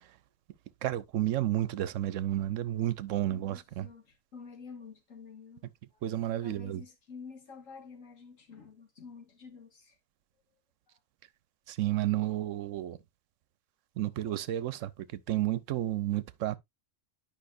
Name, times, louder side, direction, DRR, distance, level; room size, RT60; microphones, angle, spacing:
voice 1, 0.8-3.9 6.0-6.8 11.7-13.0 14.0-16.6, right 13 dB, 75° right, 1.0 m, -31 dB
voice 2, 3.3-5.6 5.9-6.0 6.4-10.0 10.9-11.0, left 5 dB, 85° left, 2.0 m, -49 dB
10.5 x 5.3 x 2.5 m
omnidirectional pair, 1.3 m